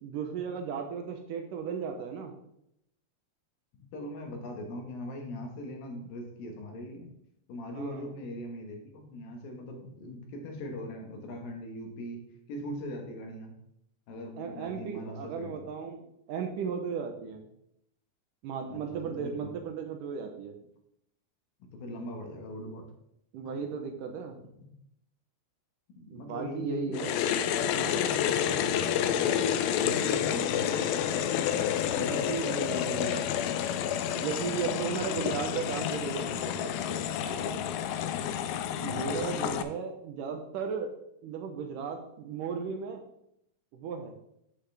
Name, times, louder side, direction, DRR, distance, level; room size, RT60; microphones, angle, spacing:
voice 1, 0.0-2.3 7.7-8.1 14.4-17.4 18.4-20.6 23.3-24.4 26.1-27.1 31.9-33.2 34.1-37.7 38.8-40.9 41.2-43.0 43.7-44.1, right 6 dB, 75° right, 4 dB, 2.2 m, -36 dB
voice 2, 3.7-7.2 7.5-12.2 12.5-13.6 14.1-15.5 18.7-19.5 21.7-22.9 26.1-27.0 27.6-32.1 32.9-33.3 38.8-39.1, left 1 dB, 75° left, 2 dB, 3.0 m, -40 dB
sound 1, 26.9-39.6, left 9 dB, 90° left, 2.5 m, -29 dB
8.4 x 7.9 x 3.4 m, 0.76 s
omnidirectional pair, 4.3 m